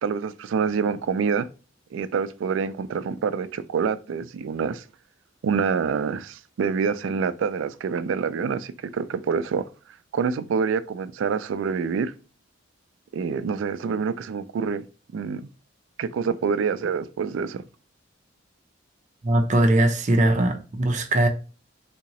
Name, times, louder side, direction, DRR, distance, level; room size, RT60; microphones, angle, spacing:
voice 1, 0.0-1.5 1.9-4.8 5.4-9.7 10.1-12.1 13.1-14.8 15.1-15.4 16.0-17.6, right 6 dB, 90° right, 0.3 m, -26 dB
voice 2, 19.2-21.3, right 1 dB, 40° right, 0.5 m, -20 dB
3.5 x 2.9 x 2.8 m
head